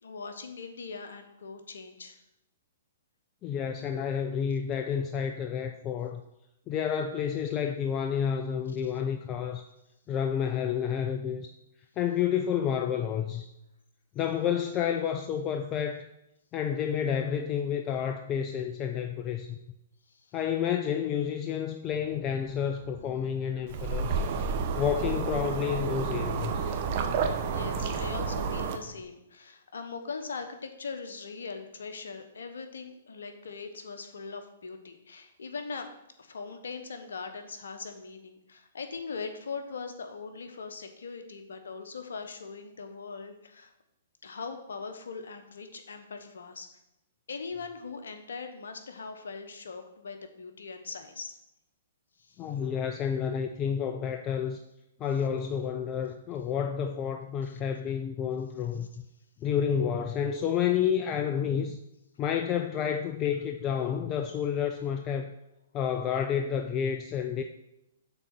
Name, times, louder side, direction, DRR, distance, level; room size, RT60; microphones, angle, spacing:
voice 1, 0.0-2.2 20.1-20.3 27.4-35.9 36.2-43.7 44.2-46.7 47.3-51.4 52.2-52.5 57.4-57.6, left 4 dB, 75° left, 6 dB, 1.1 m, -41 dB
voice 2, 3.4-6.2 6.7-9.6 10.1-11.5 12.0-13.5 14.2-16.1 16.5-19.6 20.3-24.2 24.8-26.7 52.4-54.6 55.0-58.9 59.4-61.8 62.2-65.3 65.7-67.4, left 8 dB, 30° left, 6 dB, 0.5 m, -30 dB
sound 1, 21.9-29.0, left 3 dB, 5° left, 3.2 m, -49 dB
sound 2, 23.7-28.8, right 5 dB, 45° right, 0.9 m, -30 dB
6.9 x 4.1 x 6.1 m, 0.87 s
hypercardioid pair, 120°, 0 cm